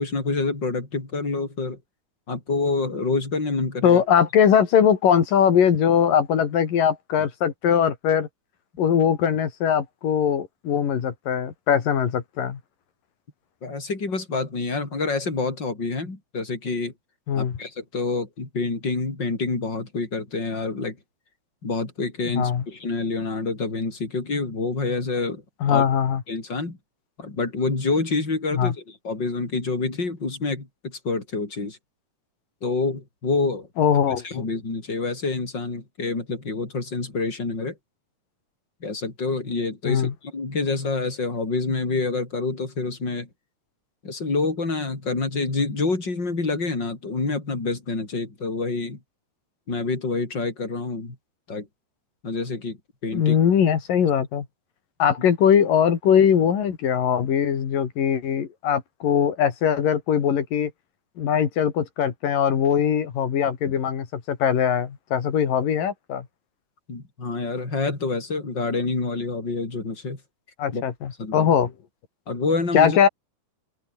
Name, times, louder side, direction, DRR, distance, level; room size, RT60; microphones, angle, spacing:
voice 1, 0.0-1.8 2.3-4.0 13.6-16.9 17.4-21.0 21.6-25.4 25.7-25.8 26.3-26.8 27.2-31.8 32.6-33.7 34.2-37.8 38.8-43.3 44.0-49.0 49.7-51.2 51.5-51.7 52.2-52.8 53.0-53.4 66.9-70.2 70.7-70.8 71.2-71.5 72.3-73.0, left 3 dB, 30° left, 6.2 m, -27 dB
voice 2, 3.8-8.3 8.8-12.6 17.3-17.6 22.3-22.6 25.6-26.2 28.5-28.7 33.8-34.4 39.8-40.1 53.1-54.5 55.0-60.7 61.2-66.3 70.6-71.7 72.7-73.1, left 8 dB, 85° left, 4.4 m, -21 dB
open air
omnidirectional pair, 3.8 m